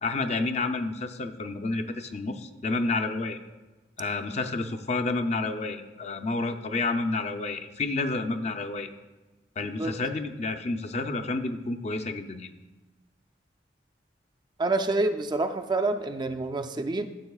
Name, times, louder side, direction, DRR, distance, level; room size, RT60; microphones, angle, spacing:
voice 1, 0.0-3.4 4.0-8.9 9.6-12.5, left 3 dB, 40° left, 7 dB, 0.5 m, -30 dB
voice 2, 14.6-17.1, right 2 dB, 25° right, 6 dB, 0.4 m, -27 dB
14.0 x 7.4 x 2.3 m, 1.1 s
head